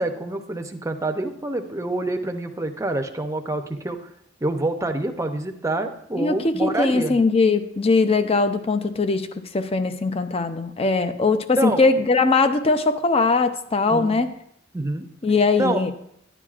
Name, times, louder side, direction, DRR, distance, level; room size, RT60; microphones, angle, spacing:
voice 1, 0.0-4.0 4.4-7.2 11.6-11.8 13.9-14.2 14.7-15.1 15.6-15.9, right 1 dB, 15° right, 5 dB, 0.6 m, -26 dB
voice 2, 6.2-9.3 9.5-14.3 15.2-15.9, left 3 dB, 30° left, 9 dB, 0.5 m, -20 dB
11.0 x 9.9 x 2.4 m, 0.71 s
head